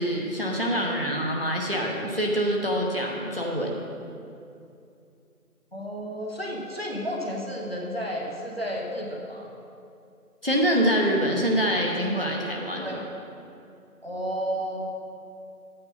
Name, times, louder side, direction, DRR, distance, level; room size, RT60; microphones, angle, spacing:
voice 1, 0.0-3.8 10.4-13.0, equal, 40° right, -1 dB, 0.9 m, -25 dB
voice 2, 5.7-9.5 12.8-13.1 14.0-14.9, equal, 40° left, -1 dB, 1.0 m, -32 dB
9.3 x 8.7 x 4.1 m, 2.6 s
figure-of-eight pair, 175°, 46 cm